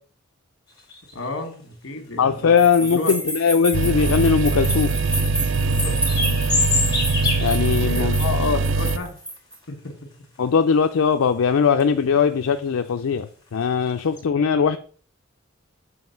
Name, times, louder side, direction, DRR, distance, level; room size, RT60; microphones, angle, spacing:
sound 1, 0.7-1.5 2.4-2.5 3.1-4.5 4.8-5.0 5.5-7.9 8.3-8.4 8.8-9.6 10.1-10.7 11.0-11.1 11.7-12.0 12.6-12.7 12.9-13.0 13.4-13.6 14.0-14.2, left 3 dB, 20° left, 2.0 m, -27 dB
voice 1, 1.1-3.3 5.6-6.0 7.4-8.1 8.5-9.2 9.7-9.9, left 1 dB, 65° left, 5 dB, 1.6 m, -34 dB
voice 2, 2.2-4.9 7.4-8.6 10.4-14.8, left 6 dB, 85° left, 8 dB, 0.4 m, -20 dB
sound 2, 2.6-9.5, right 1 dB, 5° right, 1.4 m, -31 dB
sound 3, 3.7-9.0, right 3 dB, 65° right, 0.4 m, -22 dB
7.3 x 3.2 x 5.7 m, 0.43 s
head